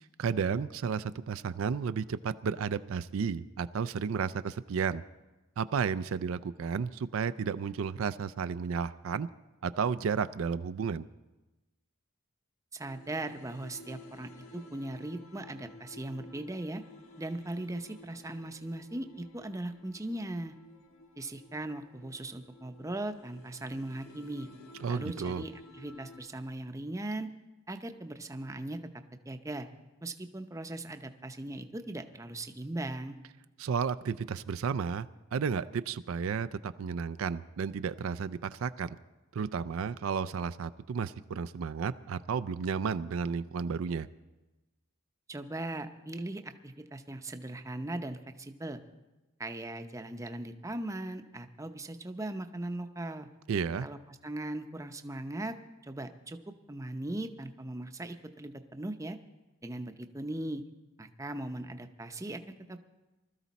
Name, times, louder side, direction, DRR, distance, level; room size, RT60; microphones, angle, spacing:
voice 1, 0.2-5.0 5.6-9.3 9.6-11.1 24.8-25.4 33.6-39.0 39.3-44.1 53.5-53.9, right 6 dB, 75° right, 13 dB, 0.4 m, -32 dB
voice 2, 12.7-16.8 17.2-20.6 21.2-24.5 24.9-27.3 27.7-28.8 29.3-29.7 30.0-33.2 45.3-48.8 49.4-53.3 53.8-55.6 55.8-56.4 56.7-59.2 59.6-60.6 61.0-62.8, right 1 dB, 15° right, 7 dB, 0.6 m, -39 dB
sound 1, 12.8-26.3, left 2 dB, 90° left, 1.4 m, -53 dB
20.0 x 13.0 x 4.1 m, 1.1 s
head